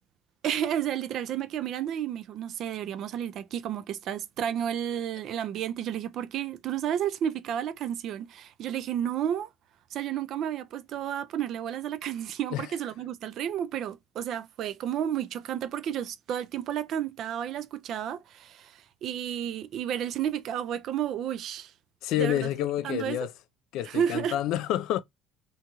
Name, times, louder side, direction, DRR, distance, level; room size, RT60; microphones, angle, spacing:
voice 1, 0.4-9.5 9.9-21.7 22.2-22.4 22.8-23.2 23.8-24.4, right 10 dB, 55° right, 0.3 m, -31 dB
voice 2, 22.0-23.3 23.7-25.0, left 12 dB, 75° left, 0.3 m, -28 dB
2.7 x 2.3 x 2.8 m
cardioid pair, 130°, 0 cm